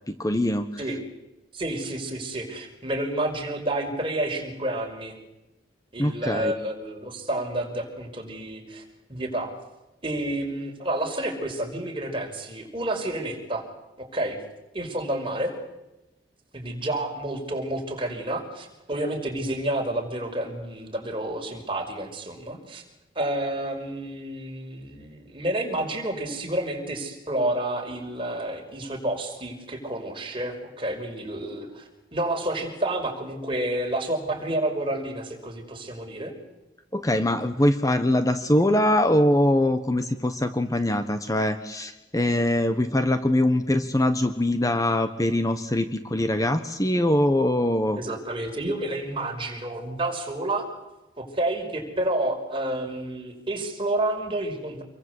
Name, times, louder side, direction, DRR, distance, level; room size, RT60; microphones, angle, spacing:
voice 1, 0.1-0.7 6.0-6.5 36.9-48.0, left 1 dB, 20° left, 9 dB, 1.2 m, -23 dB
voice 2, 1.5-5.2 5.9-8.8 9.1-9.5 10.0-13.6 14.0-14.4 14.7-15.5 16.5-22.8 23.2-36.3 47.9-50.7 51.2-54.8, right 1 dB, 30° right, 3 dB, 5.5 m, -30 dB
27.0 x 23.0 x 8.2 m, 0.99 s
head